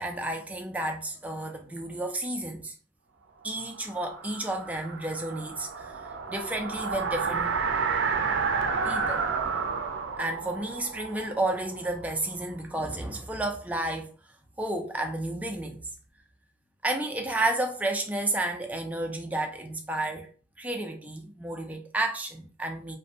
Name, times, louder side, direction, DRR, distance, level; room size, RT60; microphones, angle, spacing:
voice 1, 0.0-2.7 3.4-6.0 6.3-7.6 8.8-9.2 10.2-14.1 14.6-15.8 16.8-20.3 20.6-23.0, right 2 dB, 10° right, 0.3 m, -31 dB
sound 1, 3.6-12.4, right 5 dB, 80° right, 0.4 m, -31 dB
2.5 x 2.1 x 2.6 m
head